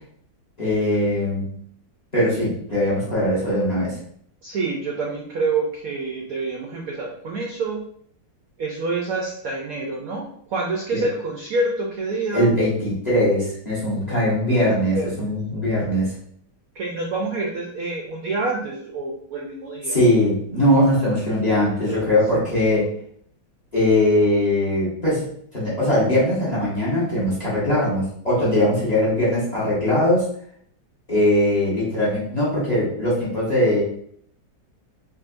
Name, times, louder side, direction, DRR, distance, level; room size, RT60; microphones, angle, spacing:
voice 1, 0.6-1.5 2.1-4.0 10.9-11.0 12.3-16.1 19.9-22.9 23.7-25.2 25.5-30.3 31.1-33.8, left 1 dB, 25° left, -7 dB, 1.0 m, -20 dB
voice 2, 4.4-7.8 8.6-12.5 14.9-15.2 16.8-20.0 21.9-22.0, right 3 dB, 75° right, 0 dB, 0.8 m, -27 dB
3.7 x 2.8 x 2.5 m, 0.64 s
omnidirectional pair, 2.1 m